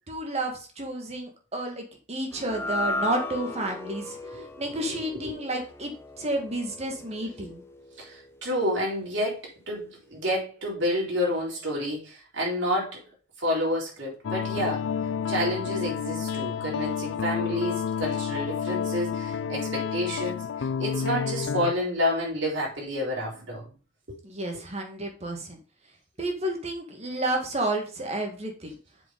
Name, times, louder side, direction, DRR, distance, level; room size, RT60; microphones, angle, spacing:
voice 1, 0.1-7.6 24.2-25.6 26.2-28.8, right 1 dB, 35° right, 1.8 m, -31 dB
sound 1, 2.3-8.7, left 2 dB, 15° left, 1.0 m, -36 dB
voice 2, 8.0-13.0 13.4-14.8 15.3-23.7 24.1-24.2, equal, 65° right, 4.3 m, -29 dB
sound 2, 14.2-21.7, left 7 dB, 70° left, 0.4 m, -30 dB
7.2 x 5.2 x 5.2 m
head